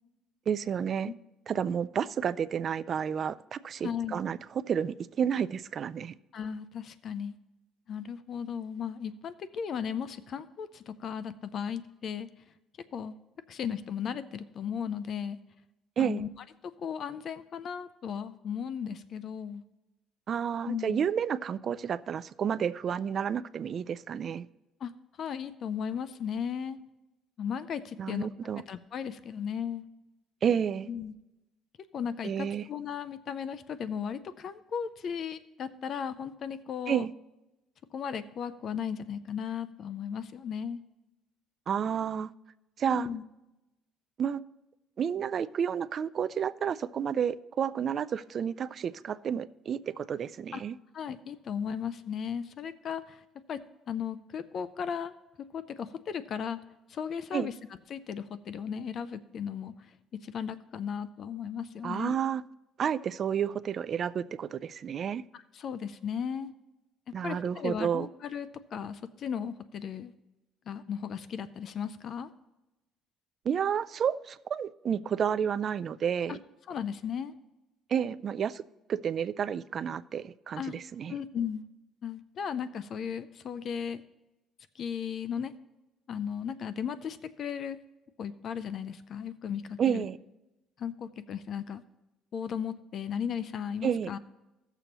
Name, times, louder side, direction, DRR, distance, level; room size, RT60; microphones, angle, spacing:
voice 1, 0.5-1.1 1.5-6.2 16.0-16.2 20.3-24.5 28.0-28.6 30.4-30.9 32.2-32.7 36.9-37.1 41.7-42.3 42.8-43.1 44.2-44.4 45.0-50.8 57.3-57.5 61.8-62.4 62.8-65.2 67.1-68.1 73.5-76.4 77.9-78.6 78.9-81.2 89.8-90.2 93.8-94.1, right 8 dB, 45° right, 15 dB, 0.3 m, -30 dB
voice 2, 3.8-4.2 6.3-7.3 7.9-12.3 12.9-13.1 13.5-15.4 16.0-16.3 16.6-19.6 20.6-21.1 24.8-24.9 25.2-26.8 27.4-28.3 28.7-29.8 30.9-31.1 31.9-37.1 37.9-40.8 42.8-43.2 50.5-50.6 50.9-53.2 53.5-56.6 56.9-57.5 57.9-59.7 60.1-62.2 65.3-66.5 67.1-70.1 70.7-72.3 76.3-76.4 76.7-77.3 80.6-80.8 81.1-81.6 82.0-84.0 84.7-85.5 86.1-87.8 88.2-90.1 90.8-91.8 92.3-94.2, left 7 dB, 50° left, 14 dB, 0.4 m, -36 dB
15.5 x 6.9 x 2.9 m, 0.98 s
cardioid pair, 125°, 0 cm